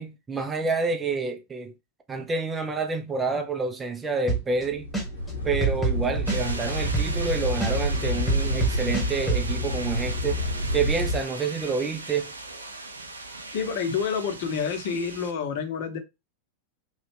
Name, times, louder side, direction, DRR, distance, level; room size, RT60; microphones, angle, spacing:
voice 1, 0.0-1.7 2.1-4.9 5.4-10.4 10.7-12.3, right 4 dB, 20° right, 0.5 m, -28 dB
sound 1, 4.3-4.6 4.9-7.3 7.6-9.4, right 3 dB, ahead, 1.3 m, -25 dB
sound 2, 4.6-11.2, equal, 85° left, 1.0 m, -28 dB
sound 3, 6.3-15.3, right 2 dB, 80° right, 0.5 m, -38 dB
voice 2, 13.5-16.0, left 6 dB, 50° left, 0.7 m, -28 dB
3.0 x 2.3 x 3.2 m
figure-of-eight pair, 90°, 0 cm